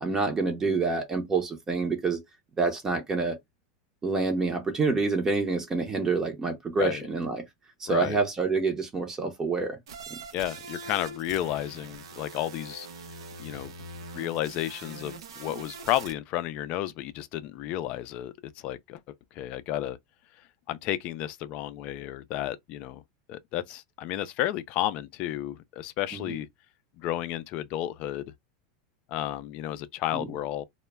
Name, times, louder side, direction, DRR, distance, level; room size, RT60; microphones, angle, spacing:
voice 1, 0.0-2.2 2.6-3.4 4.0-7.4 7.8-9.8 10.1-10.2 26.1-26.4 30.1-30.3, right 4 dB, 20° right, 0.6 m, -27 dB
voice 2, 7.9-8.2 10.3-12.9 13.4-13.7 14.1-19.0 19.3-20.0 20.7-23.0 23.3-26.5 27.0-28.3 29.1-30.6, left 13 dB, 50° left, 0.4 m, -32 dB
sound 1, 9.9-16.1, right 3 dB, 85° right, 0.6 m, -43 dB
2.1 x 2.1 x 3.2 m
hypercardioid pair, 115°, 3 cm